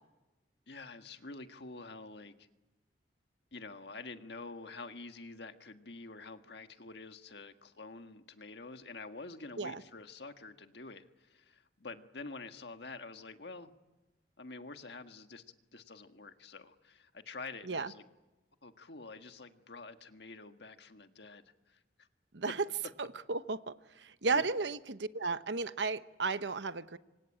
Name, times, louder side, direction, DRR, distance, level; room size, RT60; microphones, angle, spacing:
voice 1, 0.7-2.5 3.5-13.7 14.4-18.0 18.6-22.1 24.3-24.4, left 3 dB, 70° left, 7 dB, 1.6 m, -48 dB
voice 2, 23.0-27.0, right 4 dB, 80° right, 12 dB, 1.0 m, -34 dB
26.5 x 25.0 x 8.9 m, 1.1 s
head